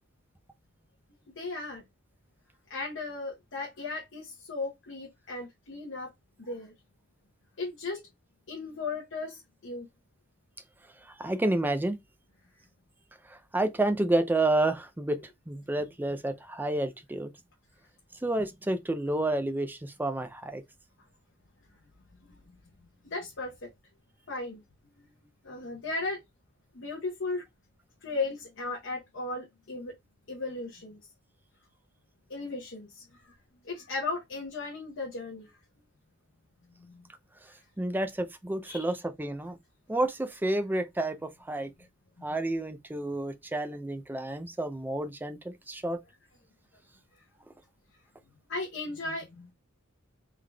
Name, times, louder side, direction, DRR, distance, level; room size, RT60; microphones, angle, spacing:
voice 1, 1.4-1.8 2.7-6.1 6.4-6.7 7.6-8.0 8.5-9.9 23.0-23.7 24.3-24.6 25.4-26.2 26.7-27.4 28.0-29.9 30.3-31.0 32.3-33.3 33.6-35.5 36.8-37.1 38.6-38.8 42.2-42.4 48.5-49.5, left 3 dB, 60° left, 0.9 m, -36 dB
voice 2, 11.2-12.0 13.3-15.2 15.5-17.3 18.2-20.6 37.8-39.6 39.9-41.7 42.2-46.0, right 2 dB, 10° right, 0.4 m, -30 dB
3.6 x 3.3 x 2.2 m
head